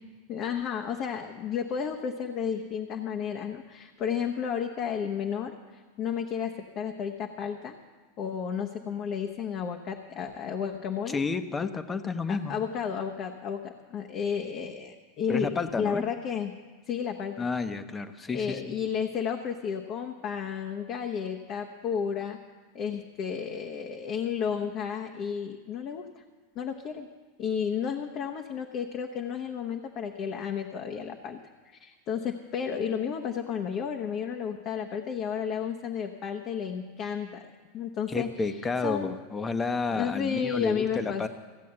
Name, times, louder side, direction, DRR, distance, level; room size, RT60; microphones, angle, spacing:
voice 1, 0.3-7.8 8.2-11.2 12.3-16.6 16.9-17.5 18.3-22.4 22.7-26.2 26.5-27.1 27.4-31.4 31.6-39.1 39.9-41.3, left 7 dB, 45° left, 4 dB, 1.0 m, -32 dB
voice 2, 11.1-12.6 15.3-16.0 17.4-18.7 38.1-41.3, left 4 dB, 20° left, 10 dB, 1.0 m, -31 dB
16.0 x 8.3 x 7.9 m, 1.4 s
hypercardioid pair, 100°, 0 cm